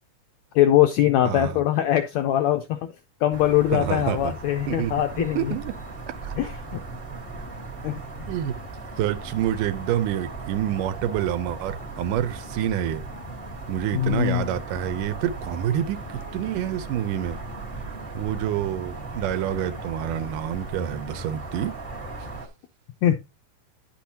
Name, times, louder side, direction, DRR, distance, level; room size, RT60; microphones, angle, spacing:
voice 1, 0.5-2.8 3.2-5.5 6.4-6.8 7.8-8.0 13.9-14.4 23.0-23.1, left 12 dB, 85° left, 1.6 m, -22 dB
voice 2, 1.2-1.6 3.7-4.3 4.7-5.7 6.2-6.3 8.3-8.5 9.0-13.1 13.7-17.4 18.1-21.7, right 10 dB, 90° right, 2.3 m, -27 dB
sound 1, 3.3-22.5, right 3 dB, 45° right, 0.7 m, -37 dB
10.0 x 5.9 x 2.8 m
omnidirectional pair, 3.7 m